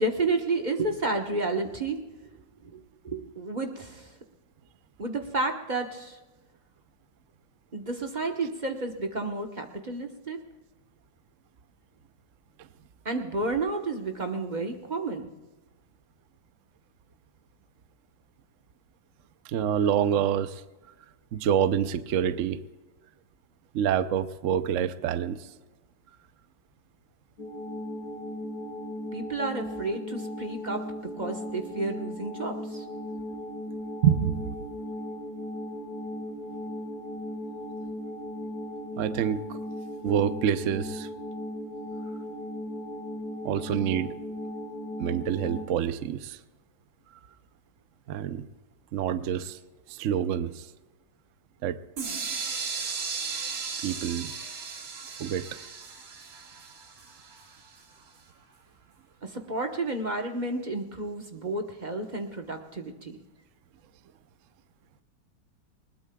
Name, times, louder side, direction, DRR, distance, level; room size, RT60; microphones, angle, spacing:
voice 1, 0.0-2.0 2.6-2.8 3.0-4.1 5.0-6.2 7.7-10.4 13.0-15.3 29.1-30.9 31.2-32.8 59.2-63.2, right 2 dB, 30° right, 4 dB, 1.0 m, -31 dB
voice 2, 19.4-20.6 21.3-22.6 23.7-25.5 34.0-34.6 39.0-39.6 40.0-41.1 43.4-44.2 45.0-46.4 48.1-48.5 48.9-49.6 49.9-50.7 51.6-51.8 53.8-54.3 55.2-55.5, right 9 dB, 70° right, 12 dB, 0.7 m, -27 dB
sound 1, 27.4-45.7, left 1 dB, 75° left, 2.3 m, -37 dB
sound 2, 52.0-57.8, right 5 dB, 90° right, 2.7 m, -36 dB
21.0 x 20.0 x 2.3 m, 1.2 s
omnidirectional pair, 2.1 m